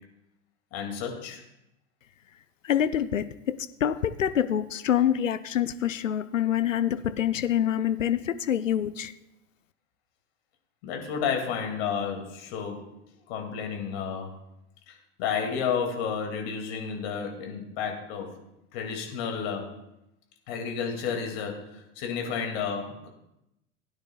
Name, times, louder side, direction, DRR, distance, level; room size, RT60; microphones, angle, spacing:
voice 1, 0.7-1.4 10.8-12.9 13.3-14.4 14.9-18.4 18.7-19.8 20.5-23.1, left 6 dB, 50° left, 3 dB, 2.4 m, -31 dB
voice 2, 2.6-9.1, left 10 dB, 85° left, 13 dB, 0.5 m, -26 dB
16.5 x 9.6 x 2.3 m, 0.85 s
figure-of-eight pair, 90°, 37 cm